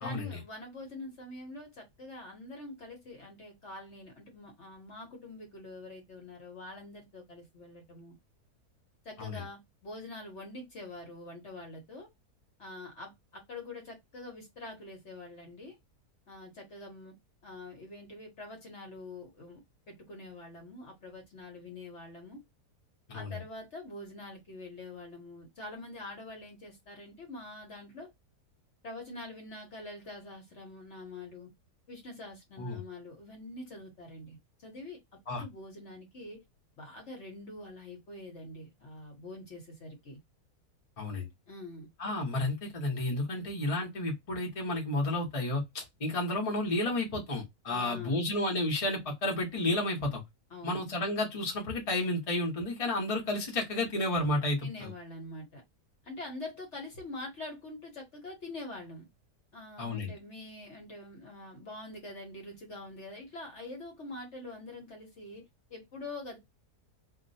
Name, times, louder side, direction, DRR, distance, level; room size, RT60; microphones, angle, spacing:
voice 1, 0.0-8.2 9.0-12.1 12.6-15.8 16.3-17.1 17.4-19.6 19.9-22.4 23.1-28.1 28.8-31.5 31.9-35.0 35.4-36.4 36.8-40.2 41.5-41.9 43.3-43.5 47.7-48.3 50.5-50.8 54.6-55.6 56.0-59.1 59.5-65.4 65.7-66.4, left 2 dB, 50° left, 1.1 m, -45 dB
voice 2, 23.1-23.4 32.6-32.8 35.3-35.4 41.0-41.3 42.0-50.2 50.6-54.9 59.8-60.1, left 2 dB, 30° left, 0.8 m, -31 dB
2.8 x 2.1 x 4.0 m
omnidirectional pair, 1.7 m